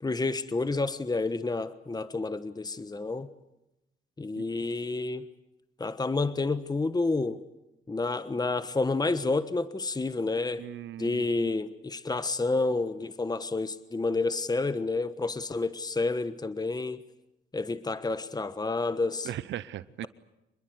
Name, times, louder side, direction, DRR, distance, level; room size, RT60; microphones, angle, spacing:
voice 1, 0.0-3.3 4.2-5.3 5.8-7.4 7.9-10.6 11.0-17.0 17.5-19.3, left 3 dB, 20° left, 13 dB, 1.2 m, -29 dB
voice 2, 10.6-11.5 19.2-20.1, right 12 dB, 75° right, 17 dB, 0.8 m, -38 dB
26.0 x 21.5 x 8.0 m, 0.93 s
supercardioid pair, 65°, 19 cm